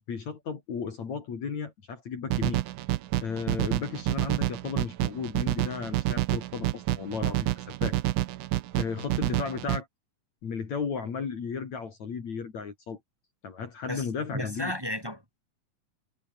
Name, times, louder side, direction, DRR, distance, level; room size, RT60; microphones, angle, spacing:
voice 1, 0.1-2.6 3.2-8.0 8.7-9.9 10.4-13.0 13.4-14.7, left 6 dB, 50° left, 4.2 m, -34 dB
sound 1, 2.3-9.8, right 16 dB, 70° right, 2.1 m, -28 dB
voice 2, 13.9-15.4, equal, 5° right, 6.4 m, -34 dB
omnidirectional pair, 4.2 m